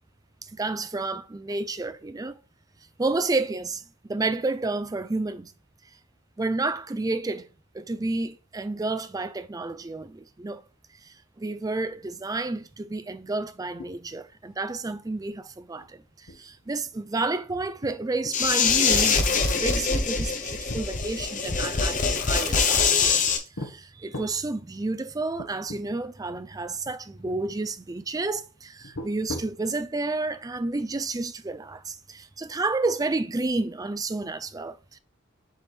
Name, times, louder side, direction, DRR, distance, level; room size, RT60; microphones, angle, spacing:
voice 1, 0.4-2.4 3.0-5.5 6.4-7.5 7.7-10.6 11.0-19.2 19.6-23.2 23.6-35.0, right 3 dB, 20° right, 0.4 m, -30 dB
sound 1, 13.8-14.3 14.6-14.7 15.1-15.3 15.7-15.9 16.3-18.5 18.8-19.5 19.9-21.8 22.5-23.1 23.5-23.7 24.1-24.4 25.0-25.1 25.4-25.8 26.1-26.2 26.8-27.4 28.8-29.7, left 1 dB, 80° left, 1.3 m, -40 dB
sound 2, 18.3-23.4, left 5 dB, 40° left, 1.0 m, -23 dB
7.2 x 4.3 x 3.5 m
head